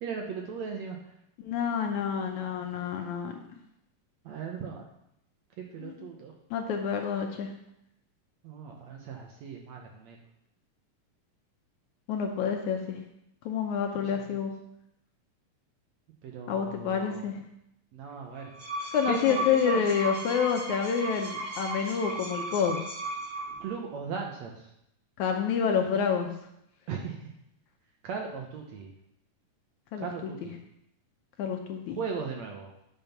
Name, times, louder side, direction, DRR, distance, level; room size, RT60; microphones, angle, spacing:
voice 1, 0.0-1.0 1.9-2.5 4.3-4.8 5.6-6.3 8.4-10.2 14.0-14.1 16.2-17.3 17.9-18.5 18.8-19.8 23.6-24.7 26.9-27.2 28.0-28.9 30.0-30.6 32.0-32.7, right 6 dB, 70° right, 1 dB, 1.8 m, -38 dB
voice 2, 1.4-3.3 5.8-6.1 6.5-7.5 12.1-13.0 13.5-14.5 16.5-17.4 18.9-22.8 25.2-26.3 29.9-30.3 31.4-32.0, left 7 dB, 75° left, 3 dB, 1.9 m, -28 dB
sound 1, 18.4-23.7, right 1 dB, 35° right, 2.1 m, -35 dB
9.5 x 5.5 x 5.8 m, 0.80 s
omnidirectional pair, 3.9 m